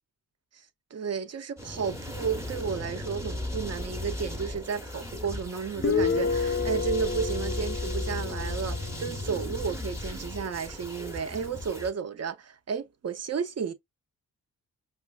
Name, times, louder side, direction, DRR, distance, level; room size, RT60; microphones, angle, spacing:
voice 1, 0.9-13.7, right 6 dB, 45° right, 0.7 m, -33 dB
sound 1, 1.6-11.9, left 1 dB, 10° right, 0.9 m, -36 dB
Guitar, 5.8-9.3, left 5 dB, 35° left, 0.6 m, -30 dB
4.9 x 2.4 x 2.2 m
supercardioid pair, 50°, 36 cm